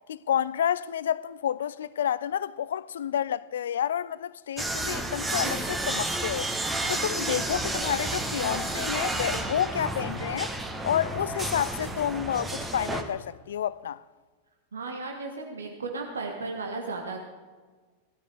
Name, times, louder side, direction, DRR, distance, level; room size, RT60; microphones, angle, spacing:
voice 1, 0.1-6.5 6.9-10.5 10.8-14.0, left 9 dB, 65° left, 0.4 m, -29 dB
sound 1, 4.6-13.0, right 2 dB, 10° right, 1.3 m, -31 dB
voice 2, 14.7-17.2, right 3 dB, 70° right, 1.5 m, -35 dB
16.0 x 12.5 x 3.5 m
figure-of-eight pair, 90°, 0 cm